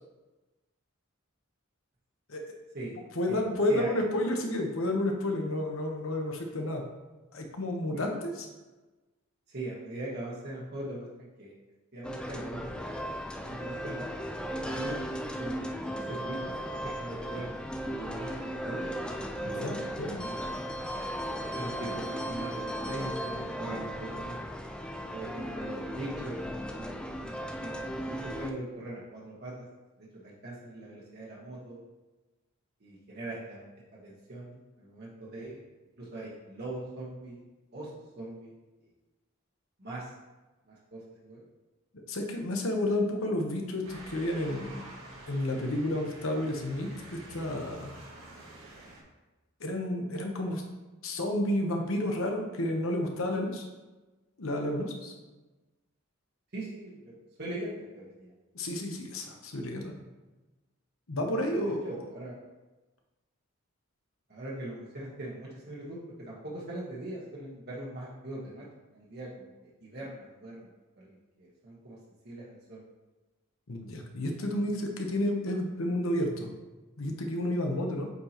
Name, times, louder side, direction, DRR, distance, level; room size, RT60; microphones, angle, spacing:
voice 1, 3.2-6.8 7.3-8.5 19.4-20.2 42.1-44.8 45.3-47.9 49.6-50.6 51.0-53.7 54.4-55.1 58.5-59.9 61.1-61.8 73.7-76.5 77.0-78.1, left 1 dB, 75° left, 2 dB, 1.0 m, -31 dB
voice 2, 3.7-4.0 7.9-8.1 9.5-11.5 11.9-13.1 13.4-14.3 14.6-15.0 15.4-16.6 17.0-17.5 17.8-18.8 20.2-20.6 21.5-24.4 25.1-26.4 26.7-26.9 27.2-27.3 27.6-29.6 30.0-31.8 32.8-35.6 36.0-37.4 37.7-37.9 38.2-38.5 39.8-40.1 40.7-41.4 56.5-57.1 57.4-58.3 61.5-62.4 64.3-68.7 68.9-69.5 69.8-70.7 71.0-72.0 72.2-72.8, right 1 dB, 50° right, -6 dB, 1.3 m, -41 dB
sound 1, 12.0-28.5, equal, 5° left, 0.3 m, -36 dB
Motor vehicle (road) / Siren, 43.8-49.0, right 1 dB, 85° right, 1.7 m, -48 dB
8.2 x 4.8 x 2.9 m, 1.2 s
head